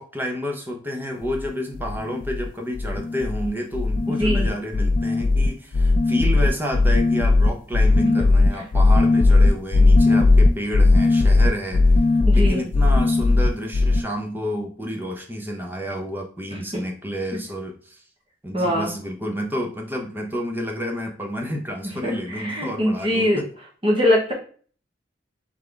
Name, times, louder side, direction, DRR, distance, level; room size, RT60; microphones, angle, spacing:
voice 1, 0.0-12.0 12.3-18.0 18.4-23.5, equal, 10° right, 2 dB, 0.7 m, -30 dB
sound 1, 1.2-1.5 1.7-2.5 2.7-3.5 3.7-14.0, left 2 dB, 45° left, 0.4 m, -17 dB
voice 2, 12.3-12.6 16.5-16.8 18.5-18.9 22.0-23.4 23.8-24.3, left 1 dB, 30° right, -4 dB, 1.1 m, -22 dB
3.6 x 3.4 x 3.8 m, 0.43 s
head